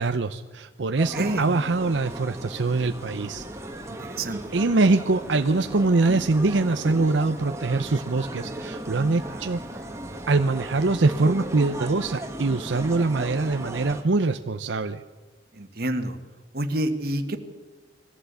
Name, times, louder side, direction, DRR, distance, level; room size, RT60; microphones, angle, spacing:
voice 1, 0.0-3.4 4.5-9.6 10.3-15.0, right 3 dB, 90° right, 8 dB, 0.7 m, -23 dB
sound 1, 1.0-14.0, right 1 dB, 15° right, 1.7 m, -36 dB
voice 2, 1.1-1.5 3.9-4.5 9.2-9.4 15.5-16.2 16.5-17.4, right 1 dB, 55° right, 7 dB, 1.7 m, -28 dB
22.0 x 15.0 x 8.2 m, 1.3 s
head